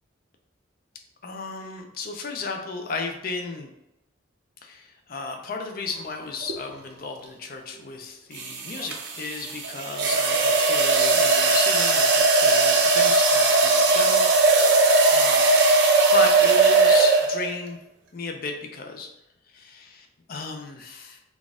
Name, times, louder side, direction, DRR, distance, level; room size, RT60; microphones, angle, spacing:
voice 1, 1.2-3.7 4.6-14.3 15.1-15.5 16.1-17.8 18.1-19.1 19.5-21.2, left 4 dB, 45° left, 3 dB, 0.4 m, -34 dB
sound 1, 6.4-6.7 8.4-17.6, right 3 dB, 60° right, 0.6 m, -19 dB
3.9 x 2.4 x 3.5 m, 0.88 s
head